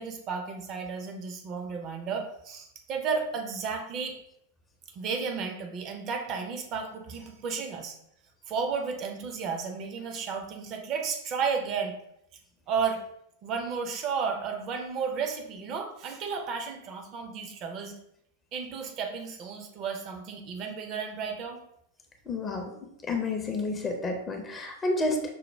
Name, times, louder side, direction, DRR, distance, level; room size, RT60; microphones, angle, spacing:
voice 1, 0.0-4.2 4.9-7.9 8.5-11.9 12.7-13.0 13.4-17.9 18.5-21.6, right 5 dB, 35° right, 4 dB, 0.6 m, -33 dB
voice 2, 22.3-22.7 23.1-25.3, left 2 dB, 20° left, 3 dB, 0.6 m, -30 dB
5.4 x 2.1 x 3.2 m, 0.75 s
figure-of-eight pair, 90°, 0 cm